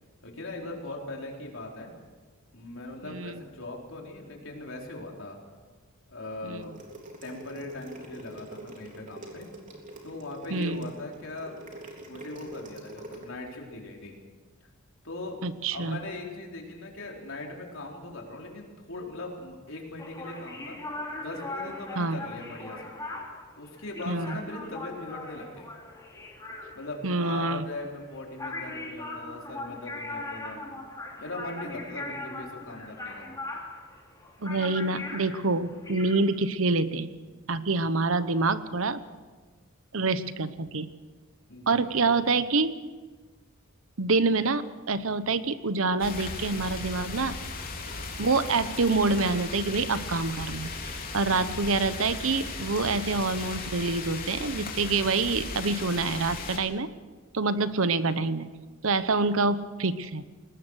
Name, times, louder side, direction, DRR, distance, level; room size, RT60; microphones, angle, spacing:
voice 1, 0.2-1.9 2.5-5.4 6.1-6.7 7.2-9.5 10.0-11.6 12.1-14.2 15.0-15.4 15.7-20.8 21.1-23.0 23.6-25.7 26.7-30.6 31.2-33.3 41.5-42.1 51.2-51.5, left 2 dB, 65° left, 0 dB, 4.2 m, -40 dB
voice 2, 3.0-3.4 6.4-6.7 10.5-10.9 15.4-16.0 22.0-22.2 24.1-24.4 27.0-27.6 34.4-37.1 37.5-39.0 39.9-40.9 41.7-42.8 44.0-47.4 48.2-50.7 51.1-56.9 57.3-58.5 58.8-60.2, right 3 dB, 70° right, 13 dB, 1.0 m, -26 dB
sound 1, 6.6-13.3, right 2 dB, 40° right, 3.6 m, -45 dB
sound 2, 20.0-36.2, left 2 dB, 15° left, 3.2 m, -39 dB
sound 3, 46.0-56.6, left 3 dB, 45° left, 3.5 m, -37 dB
21.5 x 19.0 x 6.4 m, 1.4 s
head